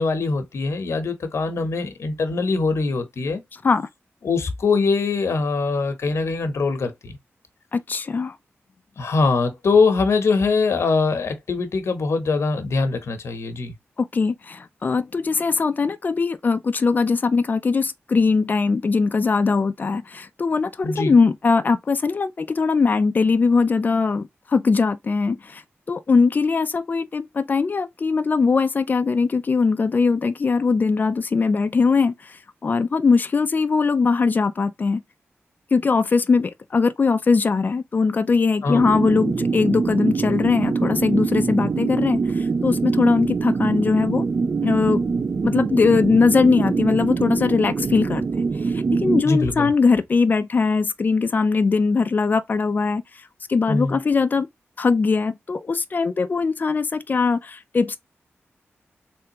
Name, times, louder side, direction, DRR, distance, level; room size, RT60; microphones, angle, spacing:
voice 1, 0.0-3.4 4.2-7.1 9.0-13.7 20.8-21.1 38.6-38.8 49.2-49.7 53.7-54.0, left 4 dB, 75° left, 0.9 m, -22 dB
voice 2, 7.7-8.4 14.0-25.6 25.9-35.0 35.7-44.3 44.6-45.0 45.4-48.2 48.6-53.0 53.5-54.5 54.8-58.0, left 4 dB, 40° left, 0.4 m, -20 dB
sound 1, 38.7-49.2, right 4 dB, 45° right, 0.4 m, -24 dB
3.6 x 3.3 x 2.9 m
wide cardioid pair, 135°, 5 cm